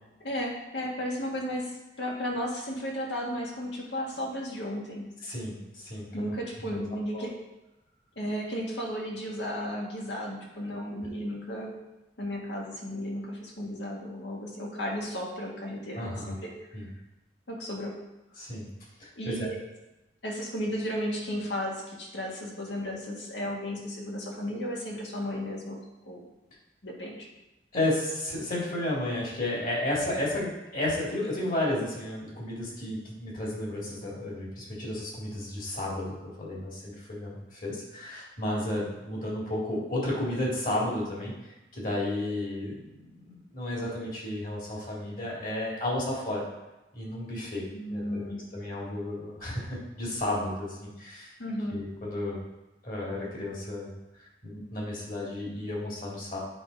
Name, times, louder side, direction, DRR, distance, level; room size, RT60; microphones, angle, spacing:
voice 1, 0.2-5.1 6.1-7.3 8.2-11.7 12.2-16.5 17.5-18.0 19.2-19.5 20.2-25.8 26.1-26.2 26.8-27.3 47.7-48.4 51.4-51.9, equal, 85° left, -2 dB, 1.7 m, -34 dB
voice 2, 5.2-6.3 6.6-6.8 7.1-7.3 16.0-16.3 16.7-16.8 18.4-18.7 19.0-19.5 27.7-46.5 46.9-48.2 48.5-51.3 51.7-52.4 52.8-53.9 54.4-56.4, left 1 dB, 50° left, -4 dB, 2.3 m, -32 dB
8.1 x 3.7 x 5.2 m, 1.0 s
head